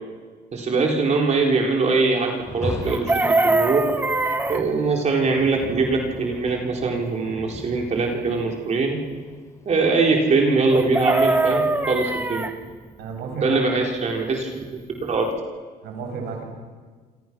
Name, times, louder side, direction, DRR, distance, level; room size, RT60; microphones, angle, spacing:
voice 1, 0.5-3.8 4.5-9.0 9.7-12.5 13.4-14.5 15.0-15.2, right 4 dB, 40° right, 1 dB, 4.2 m, -22 dB
Rain, 2.3-11.4, left 2 dB, 20° left, 3.5 m, -38 dB
Chicken rooster, 2.8-4.6 10.7-12.5 14.8-14.9 15.1-15.4, right 2 dB, 10° right, 1.4 m, -22 dB
voice 2, 13.0-13.6 15.8-16.4, right 5 dB, 80° right, 2 dB, 6.9 m, -32 dB
27.5 x 27.0 x 6.2 m, 1.5 s
cardioid pair, 110°, 17 cm